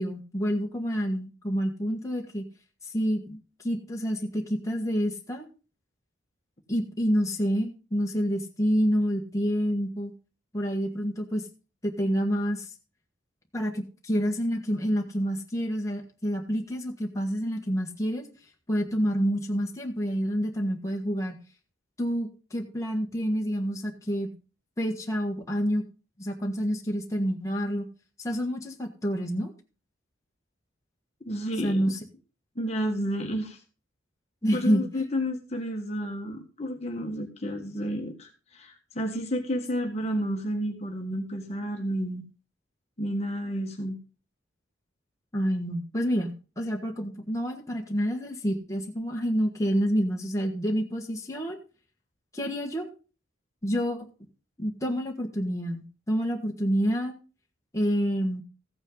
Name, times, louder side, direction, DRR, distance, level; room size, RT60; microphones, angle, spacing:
voice 1, 0.0-2.4 2.8-3.4 3.6-5.5 6.7-10.1 10.5-11.5 11.8-12.7 13.5-18.3 18.7-21.4 22.0-24.3 24.8-25.8 26.2-27.9 28.2-29.5 31.6-32.0 34.4-34.8 45.3-51.6 52.3-52.9 53.6-54.0 54.6-57.1 57.7-58.4, equal, 15° left, 0 dB, 1.6 m, -28 dB
voice 2, 31.2-31.9 32.5-33.6 34.5-42.2 43.0-44.0, equal, 30° left, 2 dB, 1.4 m, -31 dB
15.0 x 8.8 x 3.9 m, 0.35 s
head